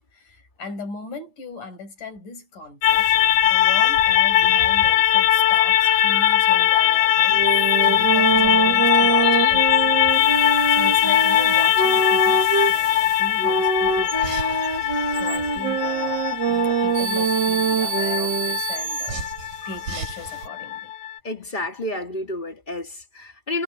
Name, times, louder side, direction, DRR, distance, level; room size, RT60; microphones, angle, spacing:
voice 1, 0.1-3.1 3.4-19.2 19.7-20.9, left 4 dB, 65° left, 7.7 m, -39 dB
sound 1, 2.8-21.2, left 12 dB, 90° left, 1.5 m, -20 dB
sound 2, 2.9-20.5, right 5 dB, 85° right, 7.1 m, -36 dB
sound 3, 7.3-12.8 13.4-18.6, right 5 dB, 40° right, 1.9 m, -24 dB
voice 2, 21.2-23.6, left 1 dB, 20° left, 1.8 m, -30 dB
omnidirectional pair, 3.9 m